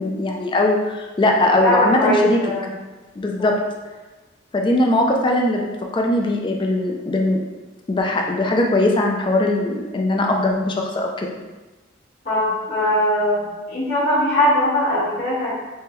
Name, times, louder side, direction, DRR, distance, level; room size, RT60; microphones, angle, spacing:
voice 1, 0.0-2.4 3.2-3.6 4.5-5.7 5.9-7.4 7.9-11.4, left 1 dB, 25° left, 1 dB, 0.4 m, -20 dB
voice 2, 1.6-2.7 3.4-3.5 12.2-15.5, left 1 dB, 45° left, -9 dB, 1.4 m, -20 dB
3.4 x 3.3 x 3.1 m, 1.2 s
head